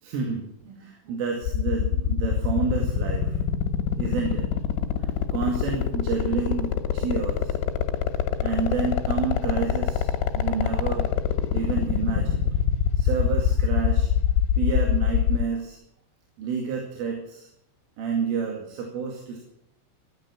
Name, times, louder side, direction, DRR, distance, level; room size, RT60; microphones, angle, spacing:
voice 1, 0.0-3.4 4.0-4.5 5.0-7.5 8.4-11.1 11.5-12.5 13.0-14.1 14.6-15.8 16.4-17.5 18.0-19.4, right 5 dB, 85° right, 1 dB, 4.8 m, -29 dB
sound 1, 1.4-15.4, left 10 dB, 80° left, 3.7 m, -23 dB
16.0 x 11.0 x 7.1 m, 0.73 s
omnidirectional pair, 5.6 m